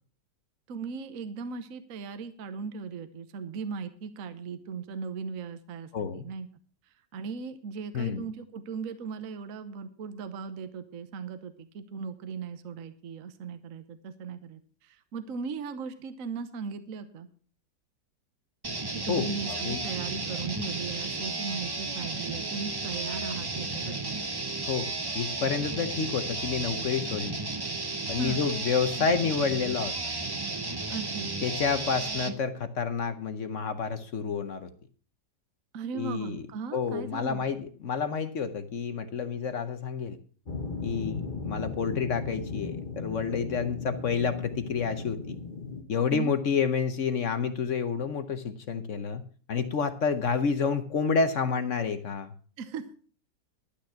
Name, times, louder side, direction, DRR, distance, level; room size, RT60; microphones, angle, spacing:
voice 1, 0.7-6.5 7.1-17.3 18.9-24.2 28.2-28.5 30.9-31.3 35.7-37.5 46.1-46.3 52.6-52.9, right 5 dB, 55° right, 10 dB, 1.2 m, -38 dB
voice 2, 5.9-6.2 7.9-8.2 19.1-19.8 24.7-24.9 25.1-27.4 28.1-30.1 31.4-34.7 35.9-36.4 36.7-40.2 40.8-45.4 45.9-49.2 49.5-52.3, left 5 dB, 55° left, 10 dB, 1.0 m, -29 dB
sound 1, 18.6-32.3, right 3 dB, 25° right, 0.5 m, -33 dB
sound 2, 40.5-45.8, left 4 dB, 30° left, 1.1 m, -37 dB
12.0 x 9.3 x 5.7 m, 0.41 s
omnidirectional pair, 1.9 m